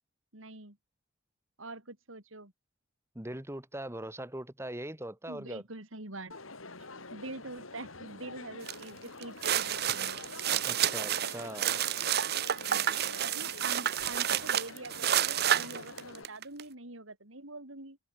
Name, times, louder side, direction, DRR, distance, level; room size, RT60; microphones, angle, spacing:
voice 1, 0.3-0.8 1.6-2.5 5.3-6.3 6.9-10.2 12.3-18.0, right 2 dB, 75° right, 4.7 m, -45 dB
voice 2, 3.1-5.6 10.6-11.8, right 1 dB, 15° right, 1.7 m, -41 dB
Crowd, 6.3-16.2, left 3 dB, 85° left, 5.1 m, -47 dB
sound 1, 8.7-8.8 9.2-16.6, right 10 dB, 50° right, 0.8 m, -30 dB
head